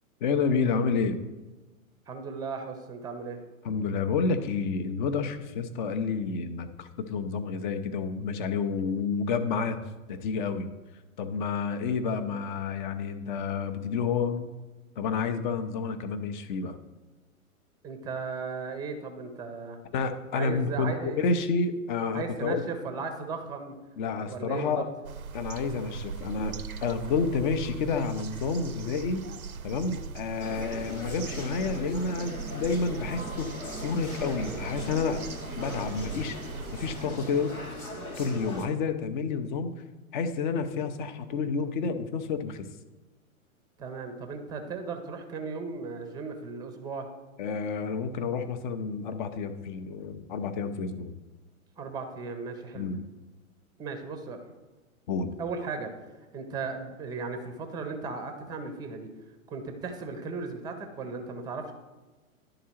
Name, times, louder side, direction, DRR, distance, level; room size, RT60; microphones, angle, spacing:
voice 1, 0.2-1.2 3.6-9.8 10.1-10.7 11.2-14.5 15.0-16.8 19.9-22.6 24.0-24.9 25.3-26.6 26.8-29.2 29.6-35.2 35.6-36.4 36.7-37.6 38.2-39.7 40.1-42.6 47.4-51.1 52.7-53.0 55.1-55.3, left 5 dB, 35° left, 10 dB, 0.6 m, -29 dB
voice 2, 2.1-3.4 17.8-19.8 20.3-21.2 22.1-23.7 24.3-24.9 43.8-47.1 51.8-52.9 53.8-54.4 55.4-55.9 56.3-59.1 59.5-61.7, right 4 dB, 10° right, 7 dB, 0.6 m, -36 dB
sound 1, 25.0-37.1, right 6 dB, 85° right, 0.5 m, -39 dB
sound 2, 30.4-38.7, equal, 90° left, 1.3 m, -39 dB
11.0 x 3.8 x 4.3 m, 1.2 s
figure-of-eight pair, 105°, 42 cm